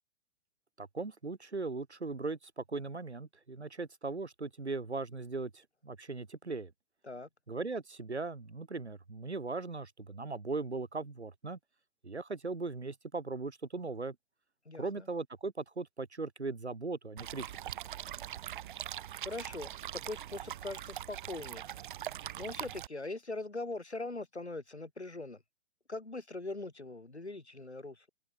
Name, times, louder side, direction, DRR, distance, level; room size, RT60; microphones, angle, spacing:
voice 1, 0.8-6.7 7.5-11.6 12.0-14.1 14.8-17.5, right 3 dB, 85° right, 1.7 m, -38 dB
voice 2, 14.6-15.1 19.2-21.7 22.4-25.4 25.9-28.1, left 2 dB, 80° left, 4.6 m, -41 dB
sound 1, 17.2-22.9, right 11 dB, 50° right, 1.7 m, -42 dB
open air
figure-of-eight pair, 115°, 33 cm